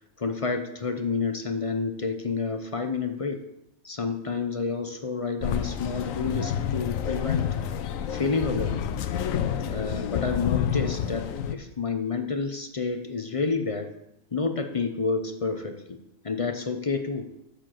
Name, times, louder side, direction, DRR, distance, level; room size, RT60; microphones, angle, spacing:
voice 1, 0.2-3.4 3.8-7.5 8.1-8.9 9.7-14.0 14.3-17.3, left 4 dB, 35° left, 7 dB, 0.6 m, -29 dB
sound 1, 5.4-11.5, left 9 dB, 75° left, 1.0 m, -29 dB
7.5 x 6.6 x 7.6 m, 0.84 s
omnidirectional pair, 1.4 m